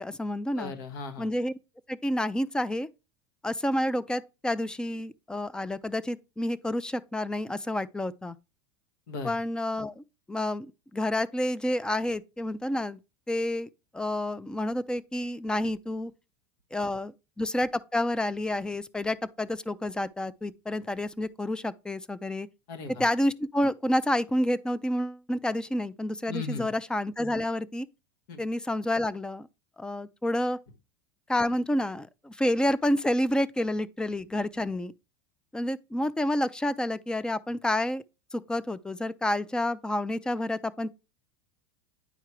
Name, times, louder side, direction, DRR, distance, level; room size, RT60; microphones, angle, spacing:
voice 1, 0.0-0.7 1.2-1.6 1.9-2.9 3.4-8.4 9.2-13.0 13.3-13.7 13.9-16.1 16.7-22.5 23.0-27.9 28.4-29.5 29.8-30.6 31.3-34.9 35.5-38.0 38.3-40.9, left 1 dB, 5° left, 0.3 m, -29 dB
voice 2, 0.6-1.3 9.1-9.3 22.7-23.0 26.3-26.7 28.3-28.4, left 4 dB, 70° left, 1.3 m, -36 dB
9.0 x 4.6 x 3.0 m
supercardioid pair, 115°, 12 cm